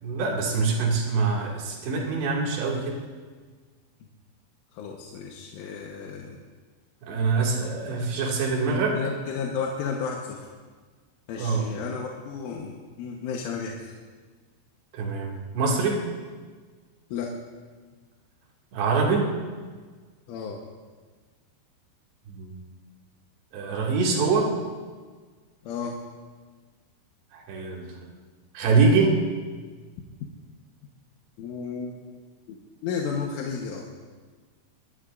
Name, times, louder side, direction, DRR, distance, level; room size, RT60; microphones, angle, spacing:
voice 1, 0.0-3.0 7.0-9.0 11.4-11.7 14.9-16.0 18.7-19.3 22.3-22.5 23.5-24.5 27.3-27.9 28.5-29.2, right 4 dB, 65° right, -3 dB, 4.4 m, -24 dB
voice 2, 4.7-6.4 8.9-10.5 11.3-13.9 17.1-17.3 20.3-20.6 25.7-25.9 31.4-32.0 32.5-32.6 32.8-33.9, left 6 dB, 85° left, -1 dB, 3.7 m, -33 dB
25.0 x 20.0 x 2.6 m, 1.5 s
omnidirectional pair, 5.5 m